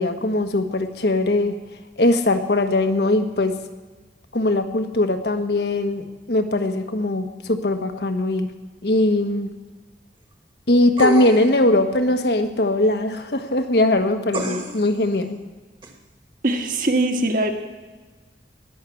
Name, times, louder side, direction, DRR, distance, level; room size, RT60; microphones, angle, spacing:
voice 1, 0.0-1.6 2.0-3.5 4.3-8.5 8.8-9.5 10.7-15.4, left 2 dB, 65° left, 7 dB, 1.2 m, -20 dB
sound 1, 11.0-11.6 14.3-14.9 15.8-15.9, right 1 dB, 25° right, 1.4 m, -27 dB
voice 2, 16.4-17.5, right 2 dB, 50° right, 4 dB, 1.5 m, -21 dB
19.5 x 6.6 x 8.4 m, 1.3 s
head